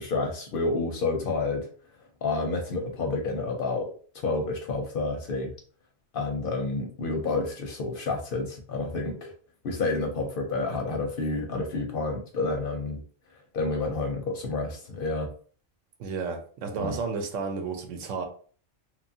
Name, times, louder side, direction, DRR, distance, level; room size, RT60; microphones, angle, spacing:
voice 1, 0.0-1.7 2.2-3.9 4.1-5.6 6.1-9.3 9.6-13.0 13.5-15.3 16.8-17.0, left 3 dB, 60° left, 0.6 m, -29 dB
voice 2, 16.0-18.3, right 5 dB, 90° right, 1.0 m, -32 dB
2.9 x 2.4 x 2.6 m
omnidirectional pair, 1.2 m